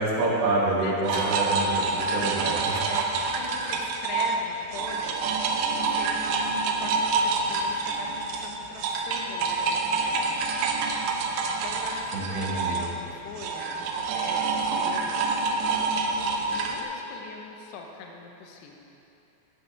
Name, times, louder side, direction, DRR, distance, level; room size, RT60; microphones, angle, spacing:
voice 1, 0.0-2.8 12.1-12.8, right 2 dB, 70° right, -5 dB, 3.7 m, -27 dB
voice 2, 0.8-1.4 2.0-3.1 3.4-6.3 6.7-10.4 11.5-14.5 14.8-15.3 16.5-18.8, left 4 dB, 85° left, 1 dB, 2.4 m, -41 dB
sound 1, 1.0-4.4 4.7-16.8, right 4 dB, 90° right, 2.5 m, -27 dB
15.0 x 8.0 x 3.4 m, 2.9 s
omnidirectional pair, 5.9 m